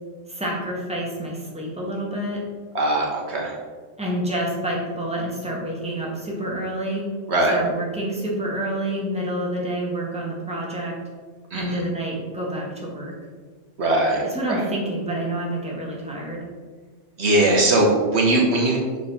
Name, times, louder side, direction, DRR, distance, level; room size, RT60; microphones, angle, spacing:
voice 1, 0.3-2.4 4.0-7.1 7.5-11.0 11.5-13.1 14.3-16.4, right 1 dB, 5° right, -4 dB, 1.6 m, -28 dB
voice 2, 2.7-3.5 7.3-7.5 11.5-11.8 13.8-14.2 14.5-14.6 17.2-18.8, right 2 dB, 65° right, -1 dB, 1.4 m, -20 dB
6.6 x 4.1 x 5.5 m, 1.4 s
omnidirectional pair, 1.3 m